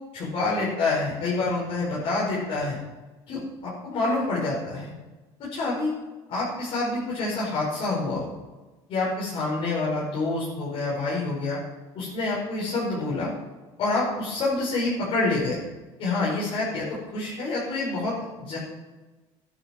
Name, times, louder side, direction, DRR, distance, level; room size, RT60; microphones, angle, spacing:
voice 1, 0.1-2.8 3.3-4.9 5.4-5.9 6.3-8.3 8.9-11.6 11.9-13.3 13.8-15.6 16.0-18.6, left 3 dB, 55° left, -7 dB, 5.2 m, -27 dB
13.0 x 12.0 x 4.6 m, 1.2 s
cardioid pair, 135°, 12 cm